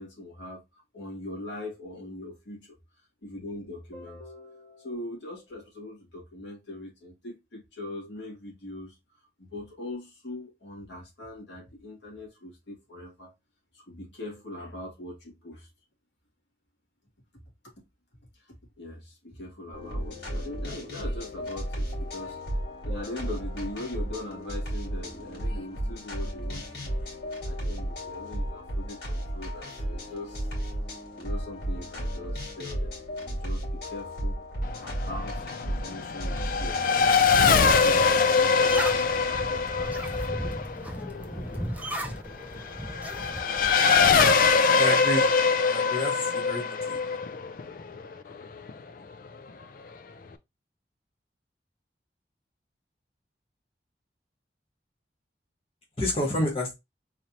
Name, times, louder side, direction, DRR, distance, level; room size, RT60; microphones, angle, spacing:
voice 1, 0.0-2.8 3.2-9.0 9.4-13.3 13.7-15.7 18.3-22.4 22.8-26.9 27.4-30.5 31.2-36.8 37.4-40.2, left 1 dB, 85° left, 2.0 m, -41 dB
sound 1, 19.7-36.9, equal, 70° left, 2.8 m, -34 dB
Race car auto racing / Accelerating revving vroom, 34.6-48.7, left 5 dB, 50° left, 0.4 m, -23 dB
sound 2, 37.0-44.4, right 1 dB, 10° right, 0.5 m, -36 dB
voice 2, 44.7-45.3 45.7-47.0 56.0-56.7, left 1 dB, 35° left, 1.3 m, -29 dB
3.9 x 3.2 x 2.8 m
head